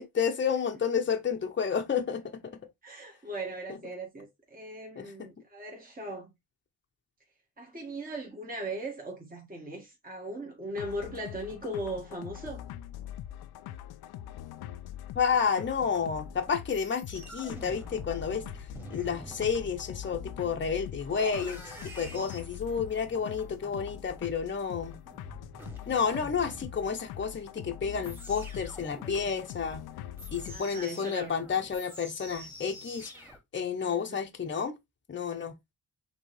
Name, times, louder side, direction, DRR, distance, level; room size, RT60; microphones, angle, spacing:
voice 1, 0.0-2.5 3.7-3.8 5.0-5.3 15.1-18.4 18.9-25.0 25.9-29.8 30.3-33.1 33.5-34.8 35.1-35.5, left 6 dB, 30° left, 1.0 m, -30 dB
voice 2, 2.8-6.3 7.6-12.6 30.5-31.3 33.8-34.2, right 1 dB, 25° right, 1.8 m, -39 dB
sound 1, 10.8-30.6, left 11 dB, 85° left, 0.5 m, -43 dB
sound 2, 15.7-33.4, left 1 dB, 5° right, 1.9 m, -48 dB
5.2 x 3.2 x 3.2 m
cardioid pair, 75°, 36 cm